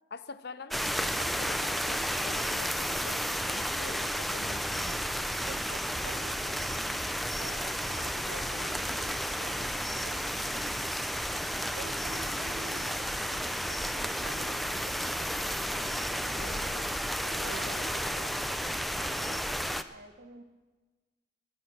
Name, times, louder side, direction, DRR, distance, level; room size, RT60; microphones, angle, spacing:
voice 1, 0.1-5.1 8.3-8.7 16.4-16.9 17.4-17.9, left 3 dB, 60° left, 13 dB, 0.7 m, -45 dB
sound 1, 0.7-19.8, equal, ahead, 0.5 m, -32 dB
voice 2, 5.4-11.0 11.7-15.3 15.8-16.6 17.2-19.5 19.9-20.4, right 3 dB, 60° right, 10 dB, 1.1 m, -48 dB
20.0 x 9.2 x 6.9 m, 1.3 s
head